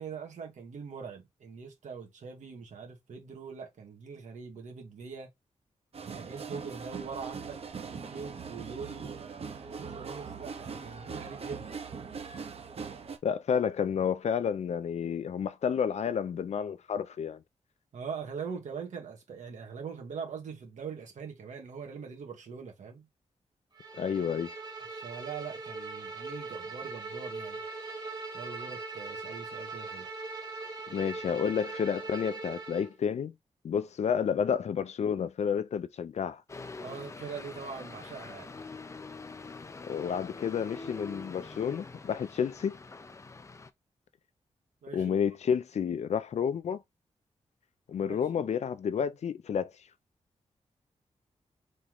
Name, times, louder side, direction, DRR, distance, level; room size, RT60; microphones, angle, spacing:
voice 1, 0.0-5.3 6.0-7.6 7.9-11.8 17.9-23.1 24.9-27.6 28.3-30.1 36.8-38.5 44.8-45.2 47.9-48.2, right 6 dB, 90° right, 1.7 m, -42 dB
sound 1, 5.9-13.2, right 5 dB, 55° right, 0.9 m, -41 dB
voice 2, 13.2-17.4 24.0-24.5 30.9-33.3 33.6-36.4 39.9-42.8 44.9-46.8 47.9-49.7, left 7 dB, 70° left, 0.5 m, -30 dB
Bowed string instrument, 23.8-32.9, right 3 dB, 35° right, 1.3 m, -40 dB
sound 2, 36.5-43.7, left 3 dB, 25° left, 0.5 m, -44 dB
4.1 x 3.2 x 3.7 m
wide cardioid pair, 140°, 12 cm